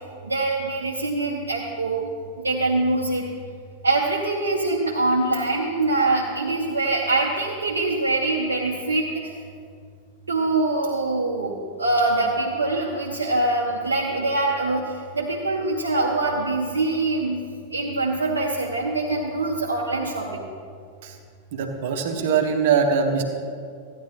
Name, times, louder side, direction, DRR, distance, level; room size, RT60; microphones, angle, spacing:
voice 1, 0.2-3.3 3.8-9.3 10.3-17.4 17.7-20.4, right 2 dB, 75° right, -2 dB, 0.8 m, -24 dB
voice 2, 21.5-23.2, right 6 dB, 55° right, 4 dB, 1.1 m, -22 dB
15.0 x 9.9 x 3.1 m, 2.2 s
figure-of-eight pair, 90°, 0 cm